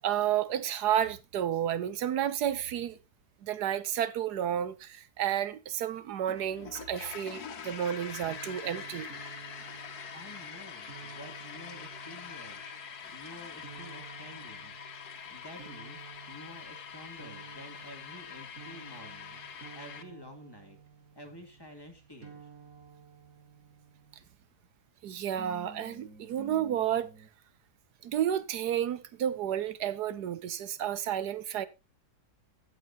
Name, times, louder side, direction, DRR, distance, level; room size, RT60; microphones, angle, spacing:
voice 1, 0.0-3.0 3.4-9.1 25.0-27.1 28.0-31.7, right 10 dB, 80° right, 1.4 m, -31 dB
sound 1, 6.2-20.0, left 7 dB, 75° left, 1.6 m, -44 dB
sound 2, 8.3-24.5 25.3-27.3, right 5 dB, 60° right, 3.1 m, -52 dB
voice 2, 10.1-12.6 13.1-14.8 15.3-20.8 21.1-22.5, equal, 15° left, 2.3 m, -50 dB
17.0 x 7.6 x 2.8 m
omnidirectional pair, 1.7 m